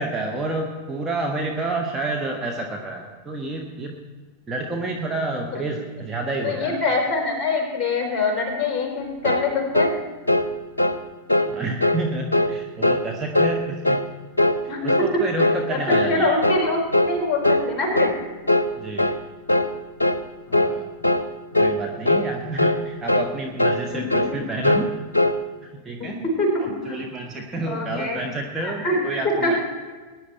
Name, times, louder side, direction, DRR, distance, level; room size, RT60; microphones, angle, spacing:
voice 1, 0.0-4.0 4.5-6.8 11.5-14.1 14.8-16.4 18.8-19.1 20.5-20.9 21.6-24.9 25.6-26.2 26.6-29.6, right 2 dB, 15° right, 1 dB, 1.3 m, -29 dB
voice 2, 6.4-9.9 14.7-14.8 15.7-18.1 23.9-24.3 26.0-26.9 27.7-28.2 28.6-29.0 29.4-29.6, left 2 dB, 20° left, 0 dB, 4.4 m, -24 dB
sound 1, 9.2-9.5 9.7-10.0 10.3-10.5 10.8-11.0 11.3-11.5 11.8-12.0 12.3-12.5 12.8-13.1 13.3-13.6 13.8-14.1 14.4-14.6 14.9-15.1 15.4-15.6 15.9-16.1 16.4-16.7 16.9-17.1 17.4-17.7 17.9-18.2 18.5-18.7 19.0-19.2 19.5-19.7 20.0-20.2 20.5-20.7 21.0-21.3 21.5-21.8 22.1-22.3 22.6-22.8 23.1-23.3 23.6-23.8 24.1-24.3 24.6-25.4, left 1 dB, 80° left, 0.6 m, -20 dB
19.5 x 10.0 x 4.3 m, 1.4 s
figure-of-eight pair, 90°, 0 cm